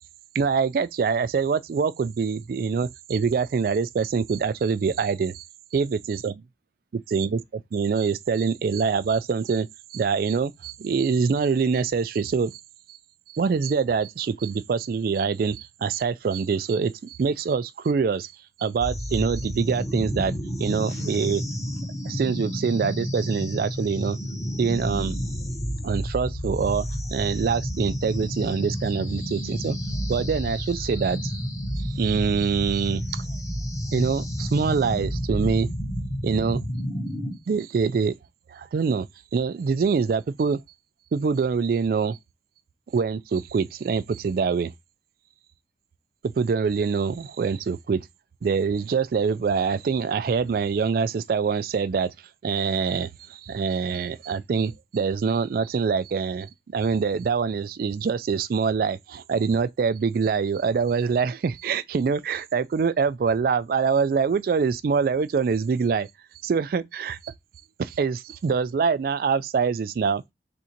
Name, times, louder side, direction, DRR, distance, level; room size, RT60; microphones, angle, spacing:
voice 1, 0.3-5.4 5.7-6.3 7.1-7.4 7.7-12.6 12.9-13.0 13.3-18.3 18.6-20.3 20.6-21.4 22.0-24.2 24.6-25.2 25.8-29.8 30.1-31.3 31.8-33.2 33.9-35.7 36.2-36.6 37.5-38.1 38.5-39.1 39.3-40.6 41.1-42.2 42.9-44.7 46.4-48.1 48.4-52.1 52.4-66.1 66.4-67.3 67.8-70.2, right 5 dB, 55° right, 0.3 m, -25 dB
sound 1, 18.8-37.4, equal, 20° left, 0.8 m, -30 dB
3.7 x 2.6 x 4.3 m
head